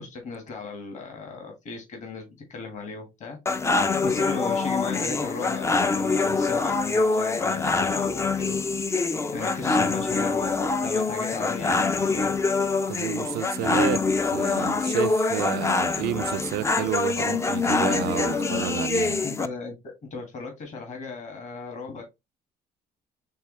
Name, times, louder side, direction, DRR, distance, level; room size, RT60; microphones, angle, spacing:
voice 1, 0.0-3.4 4.0-8.6 9.0-12.4 19.2-22.0, left 4 dB, 50° left, 1.6 m, -36 dB
sound 1, 3.5-19.5, left 3 dB, 15° left, 0.4 m, -25 dB
voice 2, 12.9-19.2, right 15 dB, 75° right, 0.4 m, -31 dB
4.7 x 3.3 x 3.1 m
cardioid pair, 135°, 16 cm